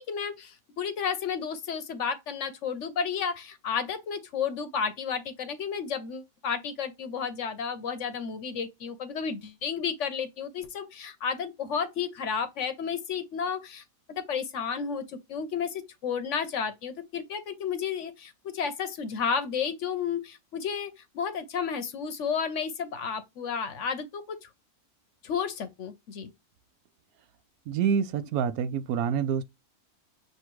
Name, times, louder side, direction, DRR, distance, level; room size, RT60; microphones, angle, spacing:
voice 1, 0.0-13.8 14.2-24.5 25.2-26.3, left 6 dB, 60° left, 0.9 m, -32 dB
voice 2, 27.7-29.4, right 7 dB, 75° right, 1.0 m, -27 dB
6.6 x 2.7 x 3.0 m
omnidirectional pair, 1.6 m